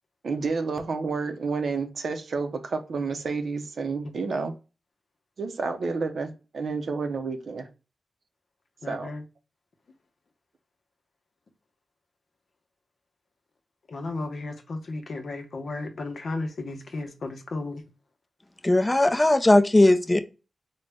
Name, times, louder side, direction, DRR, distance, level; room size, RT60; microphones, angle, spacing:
voice 1, 0.2-4.5 5.4-7.7 8.9-9.1, right 4 dB, 75° right, 0.6 m, -30 dB
voice 2, 8.8-9.2 13.9-17.8, left 2 dB, 70° left, 0.7 m, -34 dB
voice 3, 18.6-20.2, left 1 dB, 20° left, 0.4 m, -18 dB
3.9 x 2.1 x 3.3 m
cardioid pair, 60°, 0 cm